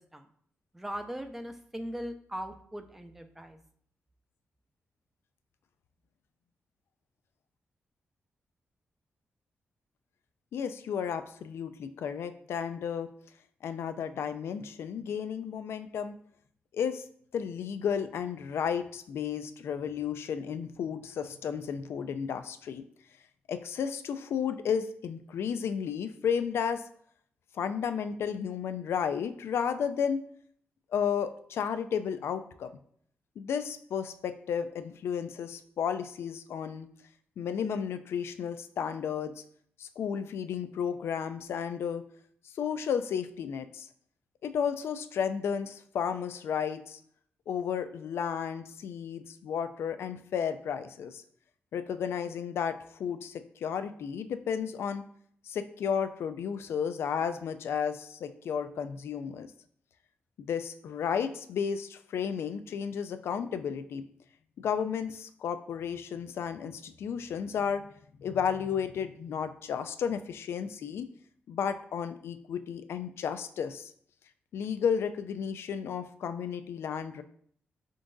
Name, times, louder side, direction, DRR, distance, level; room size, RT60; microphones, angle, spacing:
voice 1, 0.7-3.6, equal, 5° right, 6 dB, 0.3 m, -39 dB
voice 2, 10.5-13.1 13.6-16.1 16.7-17.0 17.3-22.8 23.5-26.8 27.5-30.2 30.9-32.7 33.4-36.9 37.4-39.3 39.8-42.0 42.4-43.9 44.4-47.0 47.5-51.2 51.7-55.0 55.4-59.5 60.4-64.0 64.6-67.9 68.2-71.1 71.5-73.9 74.5-77.2, left 7 dB, 75° left, 10 dB, 0.3 m, -33 dB
4.5 x 3.8 x 2.6 m, 0.62 s
wide cardioid pair, 155°, 4 cm